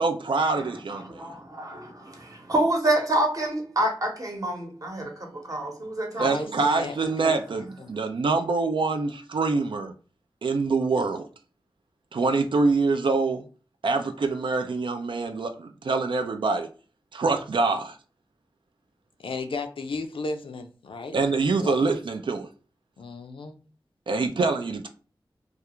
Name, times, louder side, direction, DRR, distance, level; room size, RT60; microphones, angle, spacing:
voice 1, 0.0-1.3 6.2-9.9 10.4-11.3 12.1-13.5 13.8-16.7 17.1-18.0 21.1-22.5 24.1-24.9, right 3 dB, 65° right, 0.3 m, -25 dB
voice 2, 0.5-6.5, right 1 dB, 40° right, 0.9 m, -28 dB
voice 3, 6.1-6.9 7.2-7.9 19.2-21.1 21.5-21.8 23.0-23.6, left 3 dB, 80° left, 0.4 m, -34 dB
2.4 x 2.3 x 2.9 m
cardioid pair, 45°, 9 cm